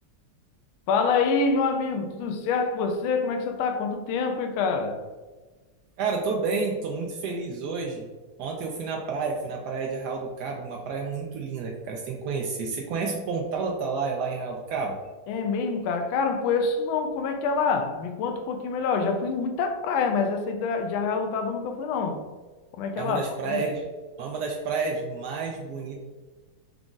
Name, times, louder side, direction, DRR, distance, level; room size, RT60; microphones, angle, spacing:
voice 1, 0.9-5.0 15.3-22.3 22.7-23.7, left 4 dB, 80° left, 1.3 m, -26 dB
voice 2, 6.0-8.0 8.4-15.0 23.0-23.8 24.2-26.0, right 4 dB, 85° right, 0.9 m, -30 dB
5.0 x 2.4 x 3.7 m
omnidirectional pair, 2.3 m